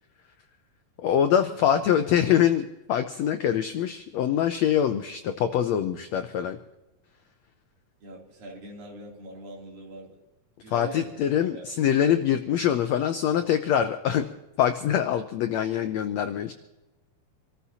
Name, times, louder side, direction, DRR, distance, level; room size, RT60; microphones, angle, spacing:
voice 1, 1.0-6.6 10.7-14.3 14.6-16.5, left 9 dB, 85° left, 7 dB, 1.5 m, -24 dB
voice 2, 8.0-10.2 10.6-11.9, right 1 dB, 75° right, -1 dB, 4.7 m, -43 dB
26.5 x 14.0 x 2.8 m, 1.0 s
omnidirectional pair, 4.0 m